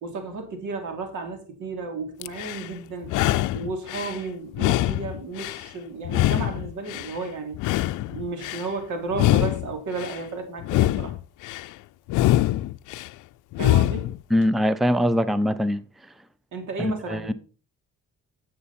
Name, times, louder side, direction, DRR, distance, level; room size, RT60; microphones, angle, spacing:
voice 1, 0.0-3.1 3.5-7.6 8.1-11.2 13.6-14.1 16.5-17.3, right 3 dB, 75° right, 3.1 m, -33 dB
sound 1, 2.2-2.7 3.0-4.2 4.5-5.7 6.1-7.2 7.5-8.7 9.1-10.2 10.6-11.7 12.1-13.1 13.5-14.2, left 15 dB, 85° left, 0.5 m, -24 dB
voice 2, 14.3-15.8 16.8-17.3, equal, ahead, 0.6 m, -22 dB
11.0 x 7.7 x 4.3 m
cardioid pair, 90°, 30 cm